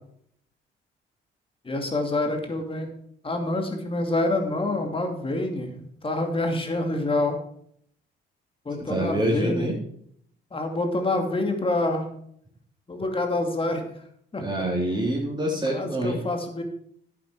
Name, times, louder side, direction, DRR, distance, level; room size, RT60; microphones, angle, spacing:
voice 1, 1.6-2.9 3.2-7.4 8.6-9.7 10.5-12.1 12.9-13.8 14.3-14.4 15.7-16.6, left 2 dB, 25° left, 4 dB, 2.6 m, -27 dB
voice 2, 8.8-9.8 14.4-16.2, right 1 dB, 20° right, -3 dB, 3.4 m, -26 dB
11.0 x 8.6 x 4.8 m, 0.66 s
cardioid pair, 90°, 20 cm